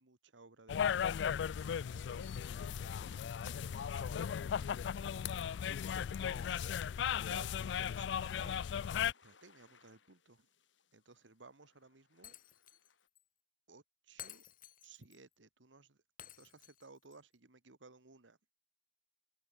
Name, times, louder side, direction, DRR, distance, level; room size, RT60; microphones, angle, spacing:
voice 1, 0.0-5.5 6.1-6.9 7.2-10.5 10.9-12.3 13.7-14.4 14.8-16.0 16.4-18.4, right 3 dB, 85° right, 1.7 m, -60 dB
sound 1, 0.7-9.1, left 8 dB, 65° left, 0.3 m, -36 dB
sound 2, 5.8-13.1, left 5 dB, 90° left, 6.6 m, -72 dB
Shatter, 12.2-12.9 13.1-13.2 14.2-15.2 16.2-17.2, left 11 dB, 50° left, 2.6 m, -53 dB
open air
head